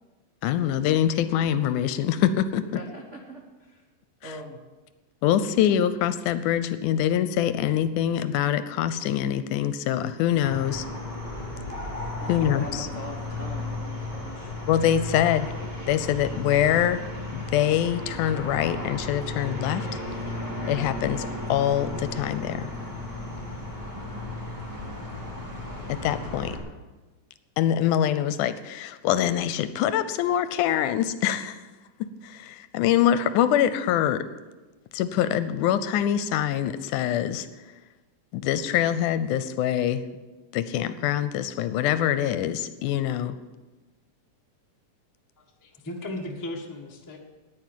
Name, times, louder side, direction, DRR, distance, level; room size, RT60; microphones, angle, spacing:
voice 1, 0.4-2.6 5.2-10.9 12.3-12.9 14.7-15.5 15.9-17.1 17.3-19.9 20.7-22.7 25.9-26.6 27.6-31.6 32.0-34.2 34.9-37.5 38.3-40.1 40.5-43.4, left 10 dB, 80° left, 13 dB, 2.0 m, -24 dB
voice 2, 2.6-3.8 4.2-4.6 12.2-14.5, right 1 dB, 85° right, 0 dB, 0.6 m, -41 dB
sound 1, 10.4-26.6, left 2 dB, 5° right, 2.7 m, -34 dB
voice 3, 45.4-47.2, left 1 dB, 30° left, 0 dB, 0.3 m, -36 dB
9.7 x 9.6 x 9.2 m, 1.2 s
omnidirectional pair, 3.8 m